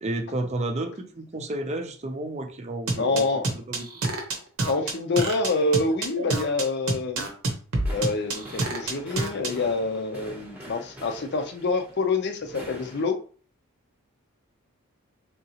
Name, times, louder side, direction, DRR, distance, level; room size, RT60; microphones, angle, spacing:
voice 1, 0.0-3.2 3.7-3.9, right 1 dB, 30° right, 5 dB, 0.5 m, -31 dB
sound 1, 2.9-9.5, right 2 dB, 75° right, 0.9 m, -27 dB
voice 2, 3.0-3.5 4.7-7.3 7.9-13.2, left 3 dB, 50° left, 6 dB, 0.5 m, -26 dB
sound 2, 7.7-13.0, equal, 10° right, 0.8 m, -44 dB
3.7 x 2.9 x 2.8 m, 0.40 s
head